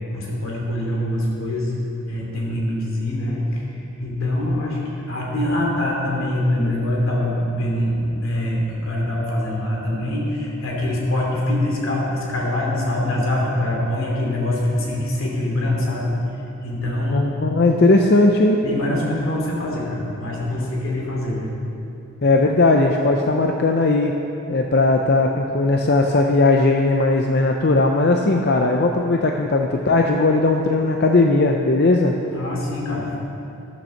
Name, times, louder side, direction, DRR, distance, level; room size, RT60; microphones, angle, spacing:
voice 1, 0.0-4.8 5.1-16.1 16.6-17.3 18.6-21.5 32.3-33.2, left 1 dB, 80° left, -3 dB, 2.7 m, -24 dB
voice 2, 17.1-18.6 22.2-24.2 24.5-32.1, left 2 dB, 50° left, 2 dB, 0.5 m, -18 dB
12.0 x 7.2 x 6.5 m, 2.8 s
head